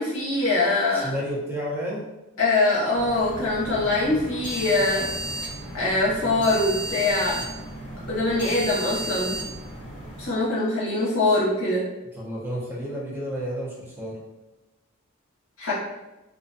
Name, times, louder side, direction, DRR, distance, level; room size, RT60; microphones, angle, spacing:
voice 1, 0.0-1.1 2.4-5.1 5.7-7.4 8.1-9.4 10.2-11.8 15.6-15.7, left 2 dB, 75° left, -7 dB, 0.8 m, -23 dB
voice 2, 0.9-2.0 12.2-14.2, equal, 10° right, -5 dB, 0.6 m, -31 dB
sound 1, 2.9-10.3, right 1 dB, 45° left, 0.9 m, -34 dB
2.4 x 2.2 x 2.5 m, 1.0 s
head